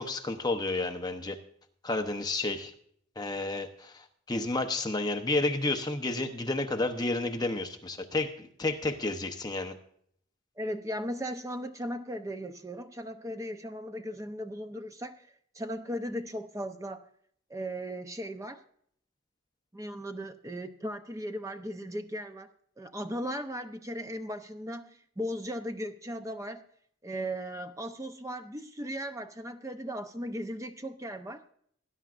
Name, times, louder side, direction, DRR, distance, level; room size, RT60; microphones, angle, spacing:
voice 1, 0.0-1.4 1.8-2.7 3.2-3.9 4.3-9.7, left 2 dB, 20° left, 0.8 m, -31 dB
voice 2, 10.6-15.2 15.5-17.0 17.5-18.6 19.7-22.5 22.8-26.6 27.0-31.5, equal, 15° right, 0.6 m, -37 dB
19.0 x 10.5 x 2.5 m
head